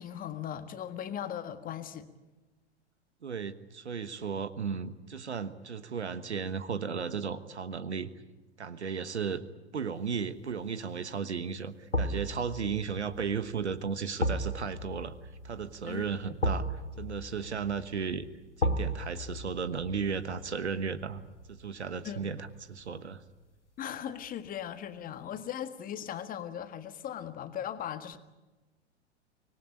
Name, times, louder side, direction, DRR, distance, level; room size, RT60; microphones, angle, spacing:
voice 1, 0.0-2.1 15.9-16.1 22.0-22.4 23.8-28.2, left 10 dB, 25° left, 10 dB, 1.7 m, -38 dB
voice 2, 3.2-8.1 8.6-9.4 9.7-15.1 15.4-18.3 18.6-21.2 21.5-23.2, right 6 dB, 75° right, 14 dB, 1.4 m, -35 dB
sound 1, 10.1-10.5 11.9-22.9 23.3-23.4, equal, 85° left, 1.7 m, -36 dB
25.5 x 19.5 x 9.9 m, 1.1 s
figure-of-eight pair, 95°, 34 cm